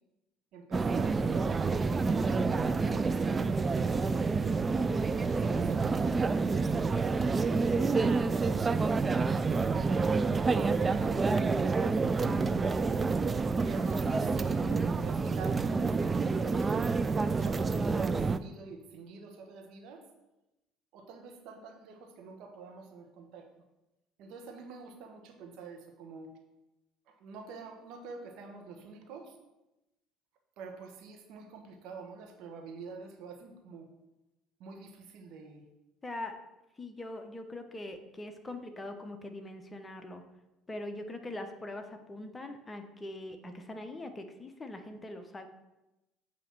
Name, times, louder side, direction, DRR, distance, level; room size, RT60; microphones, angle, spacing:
voice 1, 0.5-2.2 2.6-4.5 5.1-8.8 9.4-11.9 13.6-16.8 17.3-20.0 20.9-23.5 24.2-26.3 27.1-29.4 30.6-33.9 34.6-35.6, right 4 dB, 60° right, 3 dB, 1.2 m, -47 dB
sound 1, 0.7-18.4, right 4 dB, 25° right, 0.4 m, -28 dB
voice 2, 36.0-36.3 36.8-40.2 40.7-45.5, left 1 dB, 20° left, 6 dB, 0.9 m, -42 dB
8.2 x 3.0 x 6.1 m, 0.96 s
hypercardioid pair, 65°, 0 cm